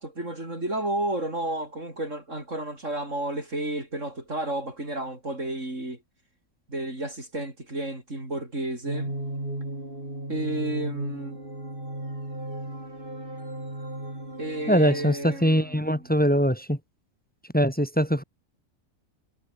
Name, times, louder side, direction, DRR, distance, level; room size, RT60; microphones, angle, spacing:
voice 1, 0.0-6.0 6.7-9.1 10.3-11.4 14.4-15.8, right 1 dB, 60° right, 7.5 m, -31 dB
sound 1, 8.9-15.2, right 1 dB, 35° right, 7.3 m, -35 dB
voice 2, 14.7-16.8 17.5-18.2, equal, 5° left, 5.9 m, -22 dB
omnidirectional pair, 1.5 m